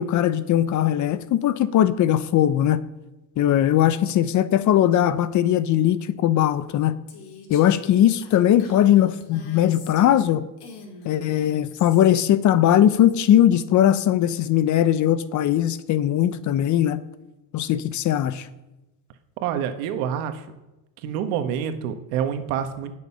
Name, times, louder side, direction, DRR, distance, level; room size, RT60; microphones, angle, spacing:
voice 1, 0.0-2.8 3.4-6.9 7.5-10.4 11.0-17.0 17.5-18.5, left 11 dB, 45° left, 0.7 m, -19 dB
Female speech woman speaking, 7.1-10.3 10.6-12.1, left 4 dB, 70° left, 2.6 m, -44 dB
voice 2, 19.4-20.4 21.0-22.9, right 8 dB, 85° right, 1.3 m, -27 dB
19.0 x 6.7 x 5.6 m
cardioid pair, 125°, 42 cm